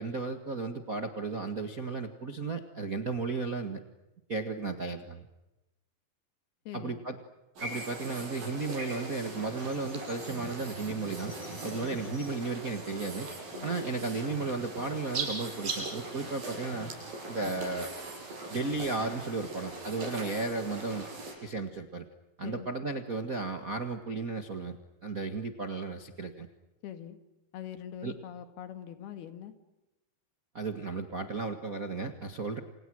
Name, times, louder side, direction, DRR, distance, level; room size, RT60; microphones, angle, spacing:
voice 1, 0.0-3.8 4.3-5.3 6.7-7.2 7.6-11.3 11.6-13.3 13.6-16.9 17.3-17.9 18.5-21.1 21.4-22.0 22.4-26.5 28.0-28.1 30.5-32.6, right 3 dB, 45° right, 5 dB, 1.1 m, -34 dB
voice 2, 6.7-7.0 11.6-11.8 13.5-13.8 22.4-22.7 26.8-27.2 27.5-29.5, left 10 dB, 80° left, 9 dB, 3.9 m, -43 dB
sound 1, 7.6-21.3, right 3 dB, 65° right, 8.5 m, -40 dB
29.0 x 28.5 x 6.4 m, 0.99 s
omnidirectional pair, 4.4 m